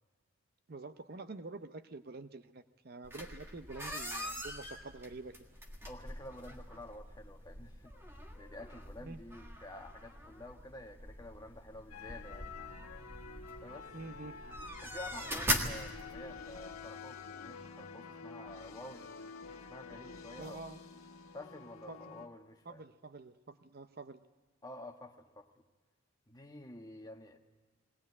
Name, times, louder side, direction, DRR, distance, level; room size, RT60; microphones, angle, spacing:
voice 1, 0.7-5.3 9.0-9.2 13.9-14.4 20.3-20.8 21.9-22.3 22.7-24.2, right 3 dB, 45° right, 10 dB, 0.6 m, -47 dB
sound 1, 3.0-16.7, equal, 10° right, 1.7 m, -42 dB
voice 2, 5.8-7.9 8.4-12.5 13.6-13.9 14.8-19.1 19.7-20.6 21.3-22.8 24.6-25.5 26.3-27.4, left 1 dB, 15° left, 3 dB, 1.3 m, -50 dB
sound 2, 11.9-22.3, left 5 dB, 80° left, 1.4 m, -49 dB
20.0 x 18.5 x 9.5 m, 1.4 s
head